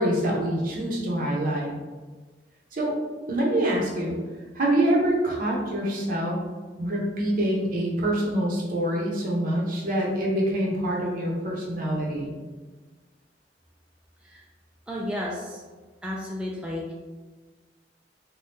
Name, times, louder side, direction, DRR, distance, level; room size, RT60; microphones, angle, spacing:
voice 1, 0.0-1.7 2.7-2.9 3.3-4.2 4.6-6.4 6.8-12.3, right 1 dB, 50° right, -3 dB, 0.7 m, -25 dB
voice 2, 14.9-15.6 16.0-16.9, left 1 dB, 5° right, -4 dB, 0.3 m, -32 dB
2.7 x 2.2 x 3.4 m, 1.3 s
head